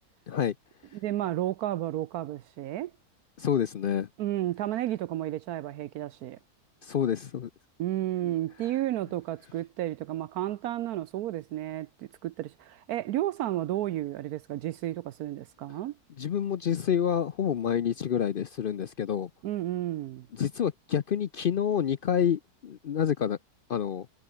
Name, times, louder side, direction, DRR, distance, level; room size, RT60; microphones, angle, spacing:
voice 1, 0.9-2.9 4.2-6.4 7.8-15.9 19.4-20.3, right 14 dB, 75° right, 1.1 m, -32 dB
voice 2, 3.4-4.1 6.8-7.5 8.2-8.3 16.2-19.3 20.4-23.4 23.7-24.1, left 8 dB, 65° left, 0.5 m, -28 dB
omnidirectional pair, 1.6 m